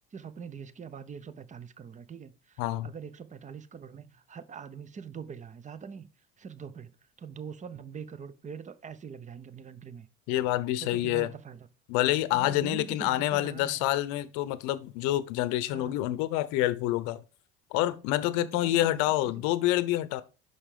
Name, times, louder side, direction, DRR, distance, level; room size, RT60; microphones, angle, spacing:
voice 1, 0.1-6.1 6.4-10.1 10.8-11.7 12.3-13.8 15.7-16.0 18.3-19.3, right 6 dB, 25° right, 0.7 m, -43 dB
voice 2, 10.3-11.3 11.9-17.2 17.7-20.2, left 15 dB, 70° left, 0.7 m, -27 dB
5.6 x 5.6 x 5.0 m
supercardioid pair, 85°, 29 cm